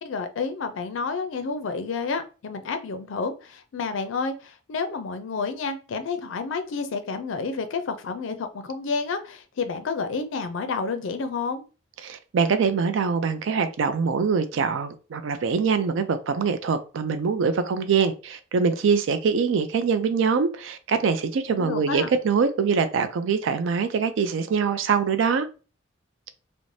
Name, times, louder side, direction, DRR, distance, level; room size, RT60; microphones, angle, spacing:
voice 1, 0.0-11.6 21.5-22.1, left 4 dB, 65° left, 0.4 m, -30 dB
voice 2, 12.0-25.5, right 5 dB, 65° right, 0.4 m, -23 dB
2.6 x 2.0 x 3.1 m
head